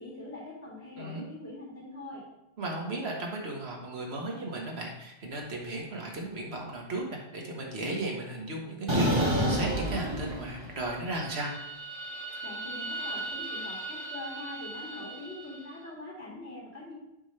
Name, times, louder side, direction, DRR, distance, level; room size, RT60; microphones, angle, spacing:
voice 1, 0.0-2.3 12.4-16.9, left 2 dB, 85° left, -7 dB, 2.5 m, -43 dB
voice 2, 2.6-11.5, right 2 dB, 85° right, 0 dB, 1.5 m, -35 dB
sound 1, 8.9-10.8 11.2-15.5, right 1 dB, 30° right, 1.1 m, -32 dB
7.6 x 3.2 x 5.5 m, 0.87 s
omnidirectional pair, 1.1 m